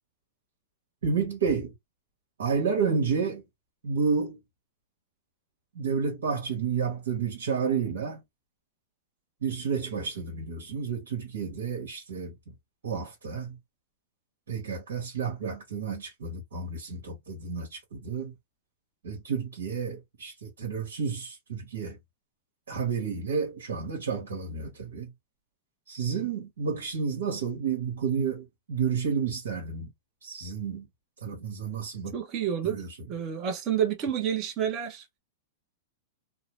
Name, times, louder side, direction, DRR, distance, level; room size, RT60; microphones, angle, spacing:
voice 1, 1.0-1.7 2.4-3.4 3.8-4.4 5.7-8.2 9.4-12.3 12.8-13.6 14.5-18.3 19.0-22.0 22.7-25.1 25.9-29.9 30.2-30.9 31.2-32.2 32.6-32.9, right 6 dB, 85° right, 1.2 m, -30 dB
voice 2, 32.1-35.2, right 8 dB, 40° right, 0.8 m, -29 dB
2.7 x 2.1 x 3.0 m
hypercardioid pair, 125°, 0 cm